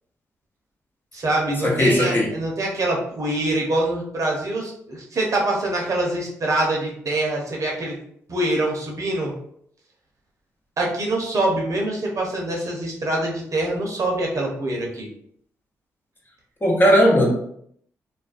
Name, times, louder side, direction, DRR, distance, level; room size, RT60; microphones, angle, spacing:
voice 1, 1.1-8.0 8.3-9.3 10.8-15.1, right 1 dB, 55° right, -1 dB, 0.8 m, -24 dB
voice 2, 1.6-2.3 16.6-17.3, equal, 30° left, -1 dB, 0.8 m, -17 dB
2.4 x 2.1 x 2.4 m, 0.66 s
hypercardioid pair, 40°, 7 cm